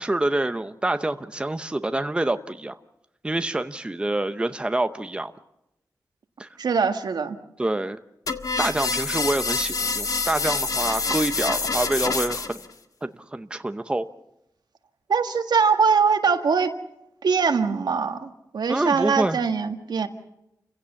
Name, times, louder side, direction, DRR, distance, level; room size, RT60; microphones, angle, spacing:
voice 1, 0.0-2.8 3.2-5.3 6.4-6.5 7.6-8.0 8.6-12.6 13.0-14.1 18.7-19.4, right 2 dB, 15° right, 9 dB, 0.8 m, -26 dB
voice 2, 6.6-7.4 15.1-16.7 17.2-20.1, right 5 dB, 80° right, 6 dB, 1.8 m, -22 dB
sound 1, 8.3-12.7, left 4 dB, 55° left, 1.7 m, -26 dB
29.5 x 16.5 x 7.1 m, 0.85 s
wide cardioid pair, 120°, 7 cm